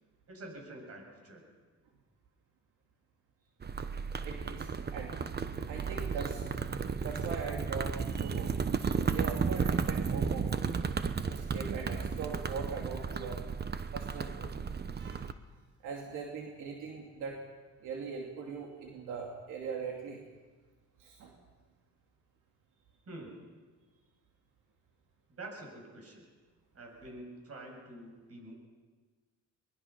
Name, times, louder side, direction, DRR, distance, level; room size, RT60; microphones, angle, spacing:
voice 1, 0.3-1.5 23.1-23.6 25.4-26.3 26.7-28.5, right 2 dB, 50° right, 2 dB, 7.6 m, -47 dB
sound 1, 3.6-15.3, right 5 dB, 35° right, 1.0 m, -34 dB
voice 2, 4.2-5.1 5.7-6.5 7.0-8.5 9.1-10.5 11.3-13.4 13.9-14.5 14.9-15.3 15.8-17.4 17.8-20.2 21.0-21.3, right 5 dB, 90° right, 0 dB, 2.7 m, -41 dB
23.0 x 21.0 x 5.8 m, 1.4 s
cardioid pair, 90°, 30 cm